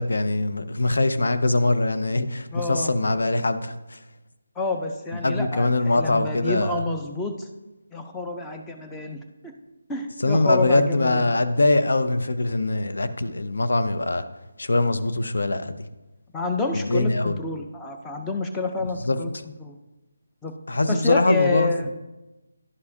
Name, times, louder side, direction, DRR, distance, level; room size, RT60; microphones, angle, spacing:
voice 1, 0.0-4.0 5.2-6.8 10.2-14.2 14.6-15.8 16.7-17.4 18.8-19.2 20.7-21.9, left 2 dB, 70° left, 9 dB, 0.6 m, -22 dB
voice 2, 2.5-2.9 4.6-7.5 7.9-9.5 9.9-11.3 16.3-19.3 19.6-19.7 20.4-20.5 20.9-21.9, left 3 dB, 10° left, 3 dB, 0.6 m, -28 dB
11.0 x 4.8 x 2.8 m, 1.0 s
figure-of-eight pair, 160°, 0 cm